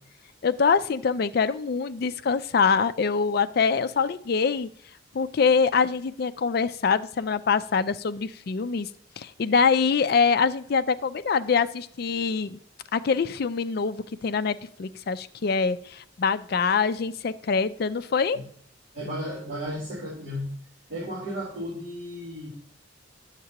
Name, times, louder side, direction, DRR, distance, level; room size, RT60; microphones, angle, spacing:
voice 1, 0.4-4.7 5.1-8.9 9.2-12.6 12.9-18.4, left 5 dB, 50° left, 12 dB, 0.4 m, -24 dB
voice 2, 18.9-20.5 20.9-22.5, equal, 40° right, -10 dB, 3.8 m, -34 dB
9.8 x 7.3 x 2.9 m, 0.64 s
head